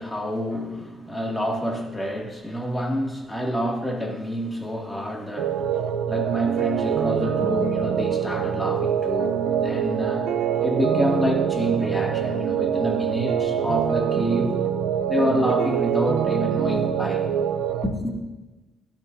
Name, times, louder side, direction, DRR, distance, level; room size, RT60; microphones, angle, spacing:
voice 1, 0.0-10.3 10.6-14.6 15.1-17.3 17.8-18.2, equal, 10° left, 0 dB, 2.2 m, -27 dB
sound 1, 5.4-17.9, right 8 dB, 85° right, 0.7 m, -24 dB
15.5 x 12.0 x 2.7 m, 1.2 s
cardioid pair, 90°, 0 cm